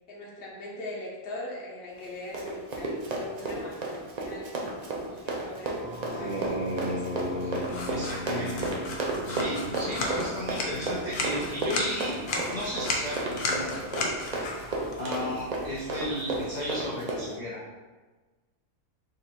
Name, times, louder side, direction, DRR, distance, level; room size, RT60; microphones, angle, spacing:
voice 1, 0.1-4.5 5.1-7.1, left 2 dB, 45° left, -4 dB, 1.0 m, -41 dB
Run, 2.0-17.3, right 2 dB, 75° right, 0.3 m, -33 dB
sound 1, 5.8-15.1, left 1 dB, 55° right, 0.9 m, -38 dB
sound 2, 7.7-16.8, left 3 dB, 90° left, 1.2 m, -35 dB
voice 2, 7.9-8.7 9.3-14.1 15.0-17.6, equal, 65° left, -6 dB, 0.4 m, -34 dB
3.8 x 2.5 x 4.2 m, 1.3 s
omnidirectional pair, 1.6 m